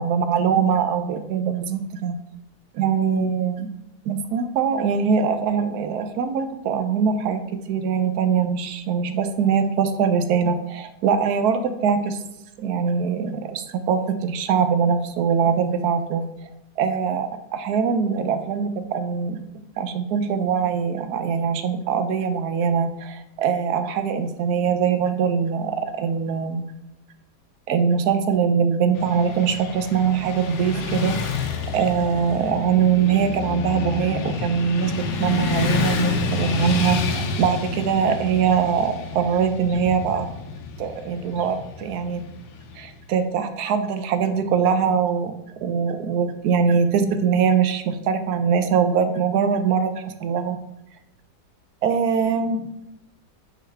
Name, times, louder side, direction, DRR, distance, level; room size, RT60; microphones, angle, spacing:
voice 1, 0.0-2.2 2.7-3.7 4.1-7.4 7.7-12.2 12.6-16.5 16.8-19.4 19.8-26.6 27.7-31.2 31.7-40.3 40.8-42.2 42.8-45.3 45.6-50.6 51.8-52.7, right 6 dB, 75° right, 9 dB, 1.1 m, -22 dB
Motorcycle / Traffic noise roadway noise, 28.9-43.1, left 5 dB, 75° left, 1.3 m, -29 dB
9.0 x 3.9 x 3.3 m, 0.84 s
omnidirectional pair, 1.8 m